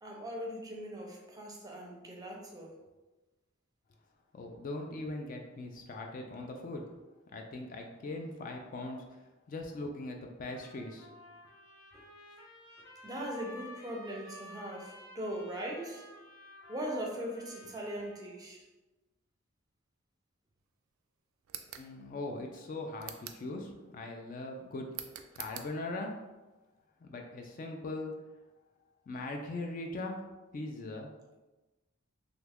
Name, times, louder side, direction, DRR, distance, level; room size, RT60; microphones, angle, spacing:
voice 1, 0.0-2.8 11.9-12.0 13.0-16.1 16.7-18.6, equal, 20° right, -1 dB, 0.5 m, -40 dB
voice 2, 4.3-6.8 7.3-9.2 9.5-11.1 21.8-24.9 25.3-26.1 27.0-28.1 29.1-30.2 30.5-31.1, left 2 dB, 40° left, 2 dB, 0.3 m, -40 dB
Trumpet, 10.5-18.3, left 1 dB, 90° left, 0.6 m, -53 dB
sound 1, 21.4-21.9 23.0-23.5 24.9-25.7, right 10 dB, 90° right, 0.3 m, -44 dB
2.9 x 2.3 x 3.4 m, 1.1 s
head